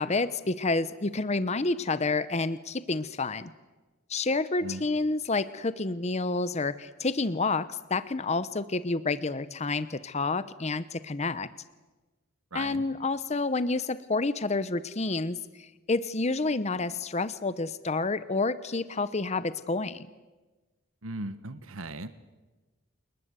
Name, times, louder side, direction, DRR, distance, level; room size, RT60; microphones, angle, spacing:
voice 1, 0.0-3.5 4.1-11.5 12.5-20.1, left 3 dB, 30° left, 15 dB, 0.8 m, -29 dB
voice 2, 12.5-12.9 21.0-22.1, right 2 dB, 80° right, 13 dB, 1.2 m, -37 dB
28.5 x 20.5 x 8.2 m, 1.2 s
head